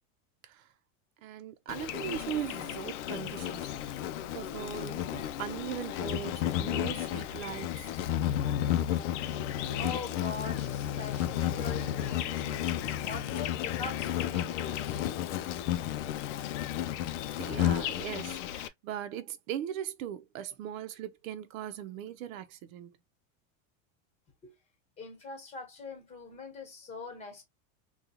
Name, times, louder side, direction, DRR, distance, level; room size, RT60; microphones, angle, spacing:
voice 1, 1.2-3.7 4.3-8.0 14.4-14.5 17.4-22.9, right 10 dB, 80° right, 0.7 m, -39 dB
Insect, 1.7-18.7, left 11 dB, 65° left, 0.5 m, -33 dB
voice 2, 9.4-15.0 24.4-24.6 25.0-27.4, left 3 dB, 15° left, 1.3 m, -43 dB
3.8 x 2.3 x 2.7 m
supercardioid pair, 175°, 40 cm